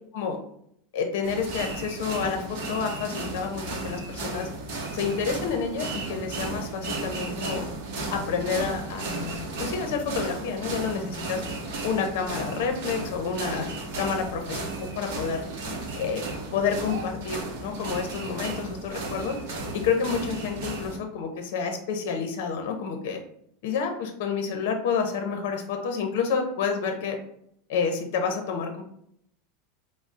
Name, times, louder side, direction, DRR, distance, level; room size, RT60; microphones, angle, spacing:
voice 1, 0.9-4.5 4.9-7.6 8.1-11.4 11.8-13.7 14.0-15.4 16.0-16.2 16.5-19.4 19.7-23.2 23.6-27.2 27.7-28.8, left 6 dB, 60° left, 5 dB, 0.6 m, -29 dB
sound 1, 1.2-21.0, right 2 dB, 55° right, 0.7 m, -34 dB
5.2 x 2.0 x 2.5 m, 0.70 s
supercardioid pair, 180°, 0 cm